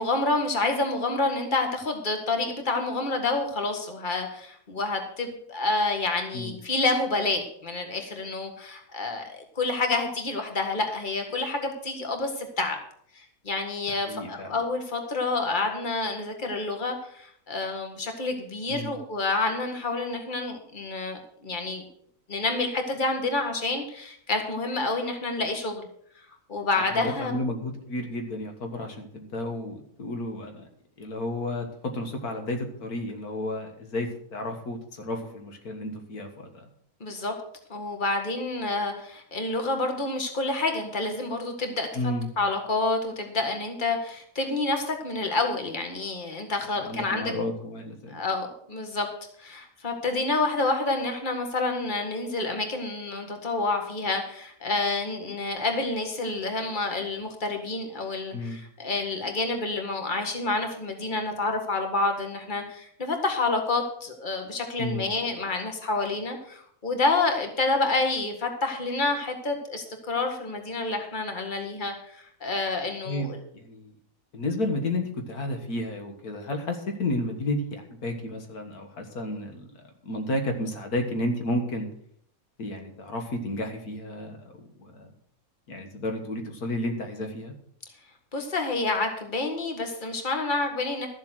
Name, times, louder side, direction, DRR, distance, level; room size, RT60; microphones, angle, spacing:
voice 1, 0.0-12.8 13.1-21.8 22.3-25.9 26.5-27.3 37.0-37.3 37.7-41.9 42.4-47.3 48.1-49.1 49.4-73.4 88.3-91.1, left 3 dB, 35° left, 4 dB, 1.9 m, -28 dB
voice 2, 13.9-14.5 18.7-18.9 26.9-30.7 31.0-36.7 41.9-42.3 46.8-48.2 58.3-58.6 64.8-65.1 73.1-73.9 74.3-81.9 82.6-84.5 84.8-85.1 85.7-87.5, left 1 dB, 85° left, 4 dB, 2.1 m, -32 dB
13.5 x 7.4 x 6.4 m, 0.66 s
omnidirectional pair, 1.5 m